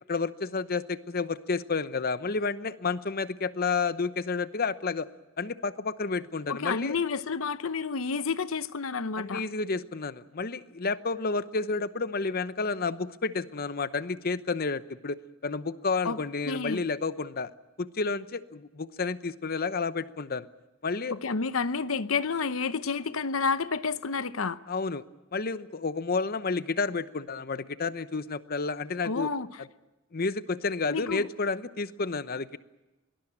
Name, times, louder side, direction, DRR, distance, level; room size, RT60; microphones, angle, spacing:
voice 1, 0.1-5.1 5.4-7.0 9.2-17.5 17.8-20.5 20.8-21.2 24.7-25.0 25.3-29.3 29.6-29.7 30.1-32.6, left 4 dB, 45° left, 0.9 m, -30 dB
voice 2, 6.5-9.4 16.0-16.2 16.4-16.8 21.1-24.6 29.0-29.5 30.9-31.2, left 5 dB, 80° left, 0.8 m, -30 dB
23.0 x 19.0 x 8.8 m
head